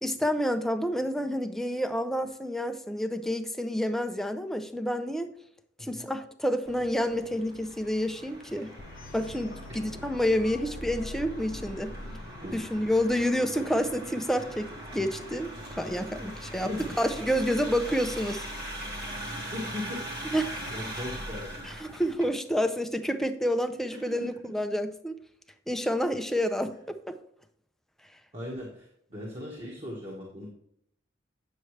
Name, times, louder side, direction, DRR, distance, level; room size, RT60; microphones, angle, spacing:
voice 1, 0.0-5.3 5.8-8.7 9.1-11.9 12.5-16.7 17.0-18.4 20.3-20.6 21.8-25.2 25.7-27.2, equal, ahead, 7 dB, 0.5 m, -29 dB
sound 1, 6.6-22.3, right 1 dB, 55° right, 2.1 m, -41 dB
sound 2, 8.8-13.7, left 1 dB, 50° left, 0.6 m, -43 dB
voice 2, 12.4-12.8 16.2-17.0 19.5-20.3 20.7-21.7 23.9-24.7 28.3-30.5, left 1 dB, 35° right, -4 dB, 1.6 m, -39 dB
9.0 x 6.9 x 3.2 m, 0.70 s
head